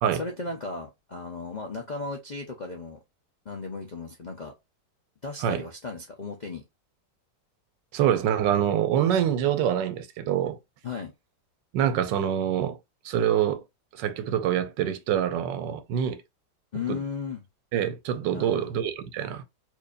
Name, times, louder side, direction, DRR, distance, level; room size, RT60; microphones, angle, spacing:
voice 1, 0.2-3.0 3.5-4.5 5.2-6.6 10.8-11.1 16.7-17.4 18.3-18.7, left 4 dB, 90° left, 0.4 m, -35 dB
voice 2, 7.9-10.6 11.7-12.8 13.0-13.6 13.9-16.2 16.9-17.0 17.7-19.4, right 10 dB, 90° right, 1.3 m, -25 dB
4.6 x 2.6 x 2.4 m
omnidirectional pair, 1.9 m